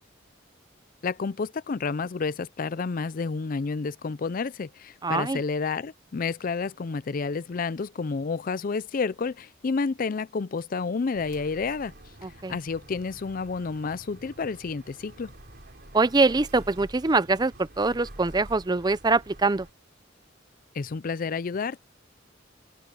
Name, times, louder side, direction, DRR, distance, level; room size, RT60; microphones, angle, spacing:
voice 1, 1.0-11.9 12.5-15.3 20.7-21.8, left 4 dB, 45° left, 0.4 m, -30 dB
voice 2, 5.0-5.4 12.2-12.6 15.9-19.7, right 3 dB, 20° right, 0.5 m, -24 dB
sound 1, 11.1-19.7, right 1 dB, 55° right, 3.8 m, -48 dB
open air
head